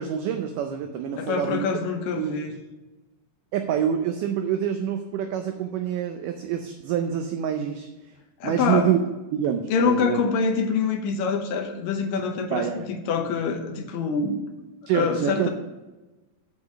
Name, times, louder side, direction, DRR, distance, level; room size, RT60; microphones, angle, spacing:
voice 1, 0.0-1.7 2.2-2.4 3.5-7.9 8.4-9.0 9.3-10.2 12.5-12.9 14.9-15.5, right 9 dB, 80° right, 6 dB, 2.0 m, -26 dB
voice 2, 1.2-2.5 8.4-8.9 9.7-14.4 14.9-15.5, left 5 dB, 75° left, 5 dB, 2.5 m, -25 dB
8.2 x 4.9 x 6.9 m, 1.1 s
omnidirectional pair, 4.1 m